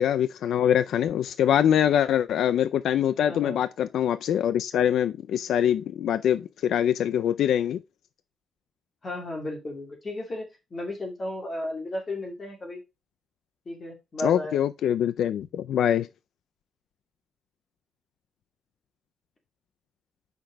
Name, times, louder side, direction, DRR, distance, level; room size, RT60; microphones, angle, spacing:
voice 1, 0.0-7.8 14.2-16.1, left 10 dB, 90° left, 0.3 m, -24 dB
voice 2, 3.3-3.6 9.0-12.8 13.7-14.6, left 1 dB, 30° left, 2.3 m, -34 dB
5.9 x 4.5 x 5.0 m
wide cardioid pair, 165°, 0 cm